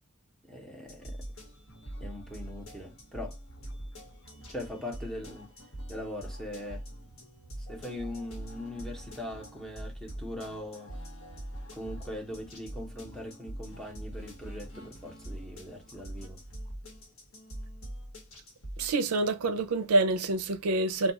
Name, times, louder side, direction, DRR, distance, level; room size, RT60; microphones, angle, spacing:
voice 1, 0.4-1.2 2.0-3.4 4.5-5.5 5.9-6.9 7.7-10.9 11.7-16.4, left 1 dB, ahead, 0.8 m, -41 dB
sound 1, 0.9-18.9, equal, 70° left, 1.2 m, -43 dB
voice 2, 18.8-21.1, right 2 dB, 80° right, 0.5 m, -27 dB
2.3 x 2.3 x 3.9 m
head